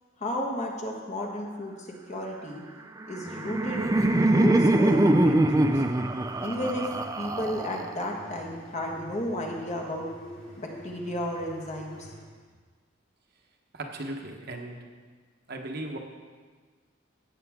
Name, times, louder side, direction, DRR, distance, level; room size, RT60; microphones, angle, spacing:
voice 1, 0.2-2.6 3.1-5.8 6.4-6.9 7.2-10.0 10.6-12.1, left 1 dB, 35° left, -1 dB, 1.6 m, -33 dB
Laughter, 3.0-8.0, right 1 dB, 15° right, 0.5 m, -23 dB
sound 1, 3.2-12.2, equal, 80° left, 4.0 m, -47 dB
voice 2, 13.7-14.8 15.5-16.0, right 2 dB, 55° right, 2 dB, 1.2 m, -36 dB
16.5 x 8.0 x 3.7 m, 1.5 s
head